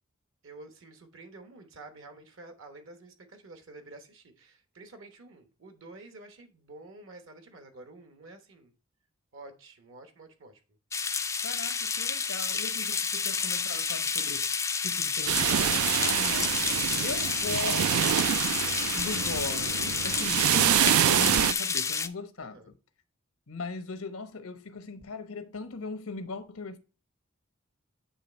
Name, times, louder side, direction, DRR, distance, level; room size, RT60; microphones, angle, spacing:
voice 1, 0.4-8.7 9.3-10.6 22.4-22.7, right 2 dB, 65° right, 1.1 m, -49 dB
sound 1, 10.9-22.1, left 5 dB, 15° left, 0.3 m, -30 dB
voice 2, 11.4-18.5 18.9-22.8 23.5-26.8, left 4 dB, 90° left, 1.0 m, -39 dB
sound 2, 15.3-21.5, right 11 dB, 85° right, 0.3 m, -26 dB
8.5 x 3.3 x 4.3 m
head